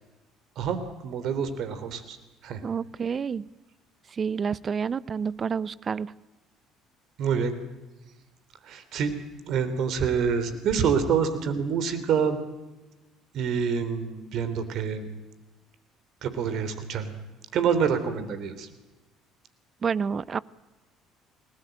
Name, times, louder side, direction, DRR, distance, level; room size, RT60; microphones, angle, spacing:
voice 1, 1.0-2.2 2.4-2.6 7.2-7.6 8.6-9.1 9.5-12.4 13.3-15.1 16.2-17.1 17.5-18.7, right 6 dB, 60° right, 11 dB, 3.2 m, -26 dB
voice 2, 2.6-3.5 4.1-6.1 19.8-20.4, right 6 dB, 40° right, 20 dB, 0.8 m, -29 dB
28.5 x 19.0 x 9.0 m, 1.1 s
hypercardioid pair, 55°, 0 cm